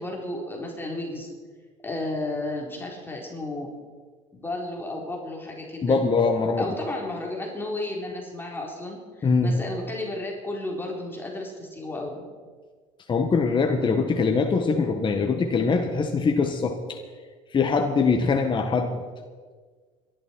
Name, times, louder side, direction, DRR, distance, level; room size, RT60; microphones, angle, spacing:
voice 1, 0.0-1.4 1.8-3.7 4.4-6.0 6.6-12.3, left 2 dB, 15° left, -1 dB, 3.8 m, -33 dB
voice 2, 5.8-6.7 9.2-9.6 13.1-17.0 17.5-19.0, left 4 dB, 30° left, 4 dB, 1.4 m, -23 dB
25.0 x 11.5 x 4.5 m, 1.5 s
supercardioid pair, 85°, 15 cm